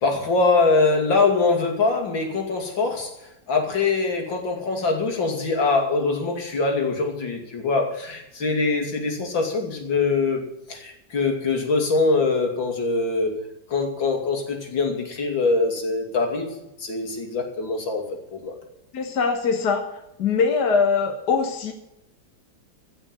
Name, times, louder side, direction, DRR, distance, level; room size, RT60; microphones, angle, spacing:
voice 1, 0.0-3.1 3.5-13.3 13.7-16.5 16.8-18.0 18.3-18.5, left 3 dB, 80° left, 3.3 m, -23 dB
voice 2, 18.9-19.8 20.2-21.7, left 5 dB, 60° left, 1.9 m, -22 dB
16.0 x 6.3 x 9.0 m
omnidirectional pair, 2.1 m